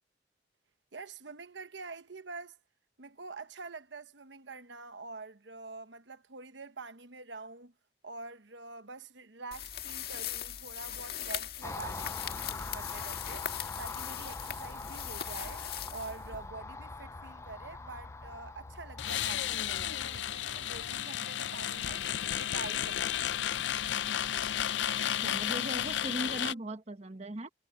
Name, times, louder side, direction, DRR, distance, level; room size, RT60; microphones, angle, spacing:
voice 1, 0.9-2.6 3.0-7.7 8.0-13.5 13.8-15.6 15.9-22.0 22.4-23.4, right 3 dB, 80° right, 1.1 m, -46 dB
sound 1, 9.5-16.7, left 9 dB, 55° left, 1.9 m, -40 dB
Car passing by, 11.6-21.0, left 3 dB, 15° left, 0.3 m, -43 dB
sound 2, 19.0-26.5, left 10 dB, 85° left, 0.5 m, -33 dB
voice 2, 25.2-27.5, right 1 dB, 35° right, 1.1 m, -38 dB
head